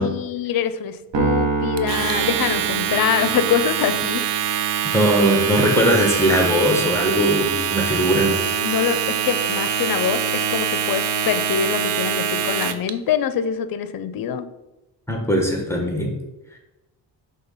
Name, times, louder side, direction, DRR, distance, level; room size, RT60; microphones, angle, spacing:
voice 1, 0.0-4.3 8.6-14.5, left 8 dB, 55° left, 12 dB, 0.6 m, -24 dB
Piano, 1.1-3.6, right 4 dB, 90° right, 1.3 m, -25 dB
Domestic sounds home sounds, 1.8-12.9, right 8 dB, 70° right, 0.6 m, -24 dB
voice 2, 4.9-8.4 15.1-16.1, equal, 5° left, 1 dB, 1.1 m, -19 dB
5.6 x 3.8 x 5.5 m, 1.0 s
cardioid pair, 120°, 43 cm